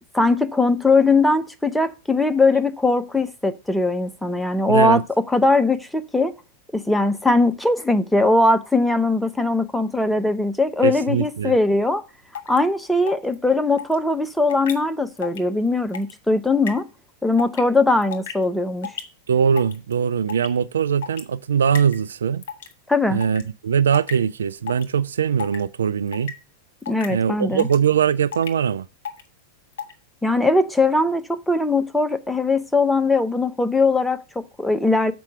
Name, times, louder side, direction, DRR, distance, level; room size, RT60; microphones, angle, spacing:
voice 1, 0.1-6.3 6.7-12.0 12.5-16.9 17.2-18.9 22.9-23.2 26.9-27.7 30.2-35.1, left 2 dB, 5° left, 0.6 m, -20 dB
voice 2, 4.7-5.0 10.8-11.5 19.3-22.4 23.1-26.3 27.1-28.8, right 7 dB, 65° right, 0.3 m, -21 dB
sound 1, 12.3-12.6 13.1-13.3 13.8-13.9 14.5-14.7 15.2-15.4 15.7-16.1 16.7-16.8 17.4-17.6 18.0-18.4 18.8-19.0 19.6-19.9 20.3-20.5 21.0-21.2 21.7-22.0 22.4-22.7 23.2-23.4 23.9-24.1 24.7-24.9 25.4-25.6 26.1-26.3 26.8-27.1 27.6-27.8 28.3-28.5 29.0-29.2 29.7-29.9, left 7 dB, 55° left, 1.2 m, -32 dB
6.9 x 4.5 x 6.8 m
figure-of-eight pair, 90°, 0 cm